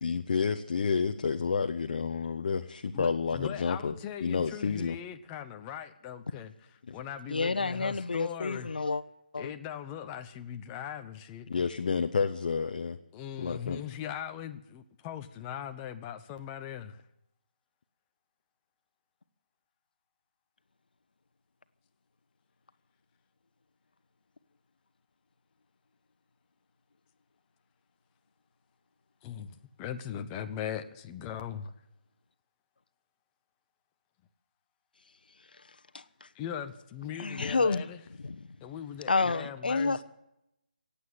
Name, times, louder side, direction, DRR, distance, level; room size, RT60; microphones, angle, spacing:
voice 1, 0.0-5.0 11.5-13.0 13.4-13.8, left 5 dB, 50° left, 6 dB, 0.9 m, -30 dB
voice 2, 2.9-6.5 6.9-8.7 9.4-11.5 13.1-17.0 29.2-31.7 36.3-38.0 38.6-40.0, left 9 dB, 20° left, 8 dB, 0.9 m, -40 dB
voice 3, 7.3-9.0 9.3-9.5 35.9-36.3 37.2-37.8 38.2-38.5 39.1-40.0, left 3 dB, 70° left, 12 dB, 1.1 m, -29 dB
17.0 x 8.6 x 9.5 m, 0.84 s
figure-of-eight pair, 155°, 5 cm